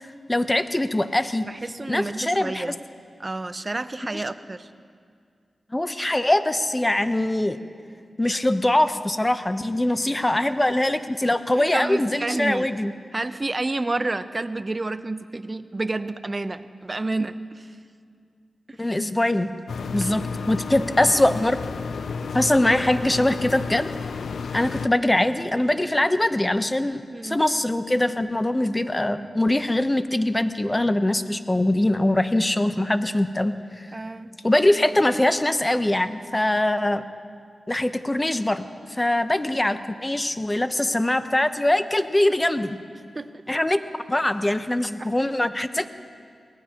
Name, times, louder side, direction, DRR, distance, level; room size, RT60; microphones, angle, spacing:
voice 1, 0.3-1.5 1.9-2.6 4.1-4.2 5.7-7.6 8.2-12.9 18.8-19.5 19.9-21.6 22.3-23.9 24.5-33.9 34.4-37.0 37.7-42.8 43.5-43.8 44.1-45.9, left 1 dB, 20° left, 10 dB, 0.9 m, -22 dB
voice 2, 1.4-2.8 3.2-4.7 10.4-10.5 11.6-12.7 13.1-17.8 18.7-18.9 20.0-20.1 21.0-21.1 22.2-22.3 27.1-27.4 33.9-34.3 43.1-43.4 45.0-45.1, right 2 dB, 40° right, 12 dB, 0.7 m, -30 dB
sound 1, 19.7-24.9, left 5 dB, 85° left, 0.5 m, -32 dB
23.5 x 18.0 x 3.0 m, 2.2 s
cardioid pair, 40°, 0 cm